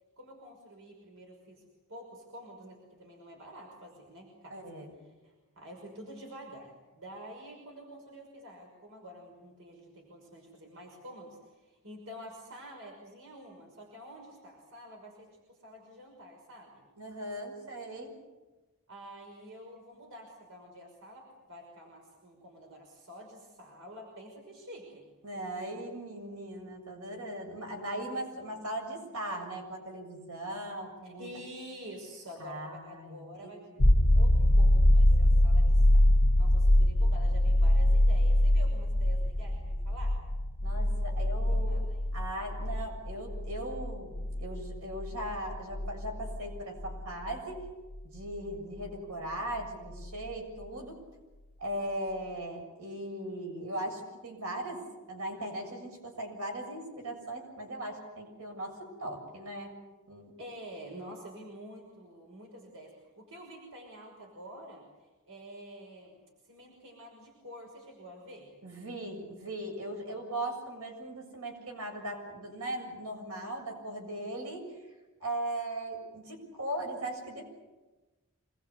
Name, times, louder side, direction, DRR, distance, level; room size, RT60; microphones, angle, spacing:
voice 1, 0.2-1.6 1.9-4.6 5.0-16.8 18.9-25.0 31.0-36.1 36.4-40.2 41.1-41.2 41.5-42.2 60.4-68.5, equal, 65° right, 1 dB, 5.8 m, -48 dB
voice 2, 4.5-4.9 17.0-18.1 25.2-31.3 32.4-33.5 40.6-41.8 42.1-47.7 48.1-51.0 51.6-54.8 55.1-59.7 60.1-60.3 68.6-74.6 75.2-77.5, right 1 dB, 80° right, 2 dB, 7.1 m, -38 dB
sound 1, 33.8-47.3 50.0-50.1, left 1 dB, 80° left, 1.6 m, -24 dB
26.5 x 21.5 x 8.4 m, 1.1 s
head